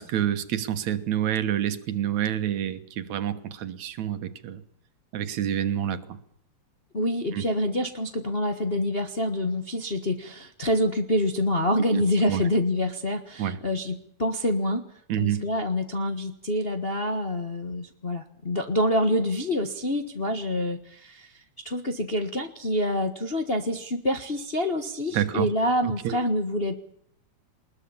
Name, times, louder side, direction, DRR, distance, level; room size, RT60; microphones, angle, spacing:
voice 1, 0.0-4.6 5.1-6.2 7.3-7.4 11.8-12.4 13.4-13.6 15.1-15.4 25.1-25.5 25.8-26.2, right 10 dB, 75° right, 10 dB, 2.6 m, -28 dB
voice 2, 6.9-14.8 15.2-26.7, left 1 dB, 35° left, 5 dB, 1.0 m, -27 dB
21.5 x 21.0 x 7.2 m, 0.70 s
omnidirectional pair, 3.3 m